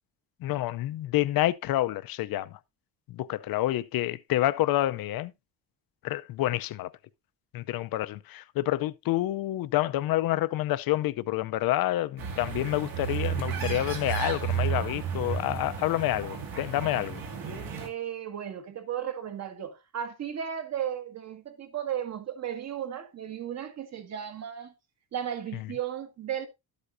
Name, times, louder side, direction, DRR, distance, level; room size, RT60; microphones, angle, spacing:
voice 1, 0.4-2.6 3.1-5.3 6.0-6.9 7.5-17.2 25.5-25.7, left 15 dB, 70° left, 0.7 m, -28 dB
sound 1, 12.2-17.9, right 8 dB, 65° right, 2.5 m, -32 dB
voice 2, 17.8-24.7 25.1-26.5, right 9 dB, 45° right, 1.7 m, -35 dB
12.5 x 8.2 x 2.6 m
cardioid pair, 170°, 37 cm